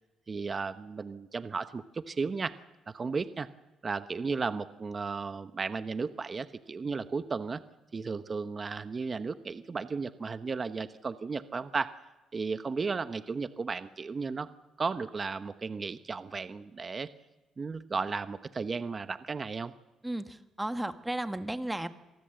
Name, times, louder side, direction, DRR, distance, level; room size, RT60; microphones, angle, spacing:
voice 1, 0.3-2.6 2.9-3.5 3.8-7.6 7.9-12.0 12.3-14.5 14.8-17.1 17.6-19.7, right 4 dB, 35° right, 12 dB, 1.0 m, -34 dB
voice 2, 20.0-21.9, right 1 dB, 10° right, 9 dB, 1.6 m, -34 dB
27.0 x 19.0 x 7.8 m, 1.2 s
cardioid pair, 90°, 0 cm